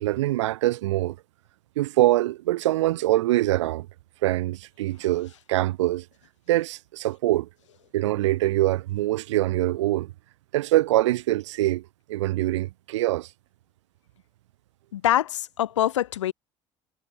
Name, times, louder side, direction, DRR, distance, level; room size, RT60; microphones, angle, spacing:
voice 1, 0.0-1.2 1.8-3.9 4.2-6.0 6.5-7.5 7.9-10.1 10.5-13.3, right 16 dB, 75° right, 0.7 m, -24 dB
voice 2, 14.9-16.3, left 12 dB, 80° left, 0.9 m, -24 dB
figure-of-eight pair, 55°, 15 cm